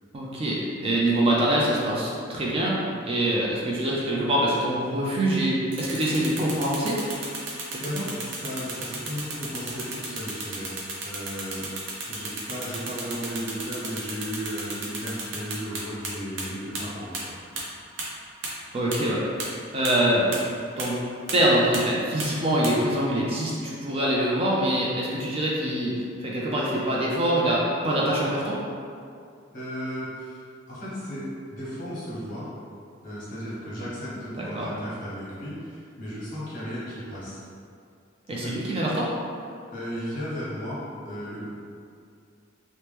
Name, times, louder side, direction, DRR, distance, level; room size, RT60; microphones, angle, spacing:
voice 1, 0.1-2.8 3.1-7.0 7.7-8.0 18.7-19.2 19.7-20.3 20.8-21.0 21.3-28.6 34.4-34.7 38.3-39.1, right 1 dB, 30° right, -5 dB, 0.4 m, -24 dB
sound 1, 5.7-16.1 16.4-16.5 16.7-16.8 17.1-17.2 17.6-17.7 18.0-18.1 18.4-18.5 18.9-19.0 19.4-19.5 19.8-19.9 20.3-20.4 20.8-20.9 21.3-21.4 21.7-21.8 22.2-22.3 22.6-22.7, right 3 dB, 80° right, 0.6 m, -33 dB
voice 2, 7.4-10.7 11.0-11.7 12.1-17.3 29.5-30.4 30.7-32.5 33.0-37.4 38.3-38.5 39.7-41.5, equal, 45° left, -9 dB, 1.0 m, -35 dB
2.9 x 2.1 x 3.3 m, 2.3 s
head